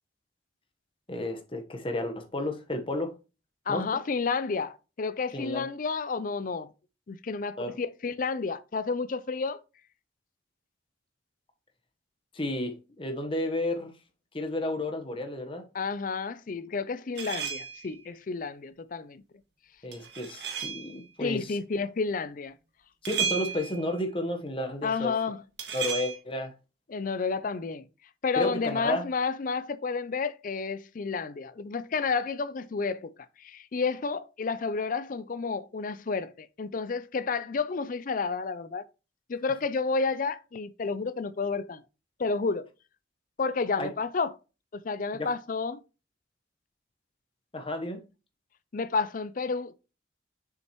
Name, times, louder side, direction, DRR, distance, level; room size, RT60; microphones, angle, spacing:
voice 1, 1.1-3.1 3.7-3.9 5.3-5.7 7.6-7.8 12.3-13.9 14.3-15.6 19.8-21.6 23.0-25.1 25.7-26.5 28.4-29.1 43.8-43.9 45.2-45.3 47.5-48.0, left 1 dB, 30° left, 1.1 m, -32 dB
voice 2, 3.7-6.7 7.1-9.6 15.7-19.2 21.2-22.5 24.8-25.4 26.9-27.9 28.2-33.1 33.4-38.8 39.3-41.8 42.2-42.7 43.4-44.3 44.7-45.8 48.7-49.7, left 4 dB, 45° left, 0.4 m, -31 dB
sound 1, 17.2-17.9 19.9-21.0 23.1-23.9 25.6-26.2, right 8 dB, 70° right, 1.8 m, -33 dB
7.2 x 6.3 x 3.0 m
head